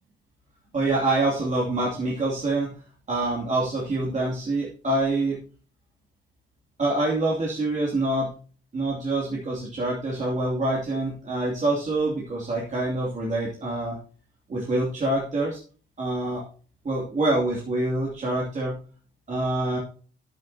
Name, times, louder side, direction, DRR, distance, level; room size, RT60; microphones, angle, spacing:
voice 1, 0.7-2.8 3.1-5.4 6.8-8.3 8.7-14.0 14.5-15.6 16.0-16.4 16.8-18.7 19.3-19.8, right 2 dB, 40° right, -4 dB, 2.8 m, -26 dB
9.6 x 9.5 x 2.8 m, 0.40 s
cardioid pair, 90°, 20 cm